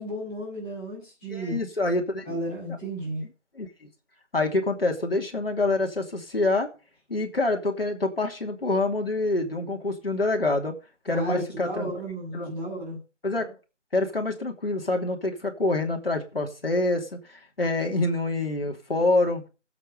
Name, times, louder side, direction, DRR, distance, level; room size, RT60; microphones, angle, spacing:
voice 1, 0.0-1.6 2.2-3.2 11.1-13.0, right 1 dB, 5° left, -12 dB, 6.6 m, -33 dB
voice 2, 1.3-2.4 3.5-3.9 4.3-6.7 7.1-10.7 11.0-11.9 12.3-12.5 13.2-13.5 13.9-19.4, left 2 dB, 50° left, 2 dB, 3.1 m, -26 dB
14.5 x 8.0 x 5.4 m, 0.32 s
figure-of-eight pair, 180°, 36 cm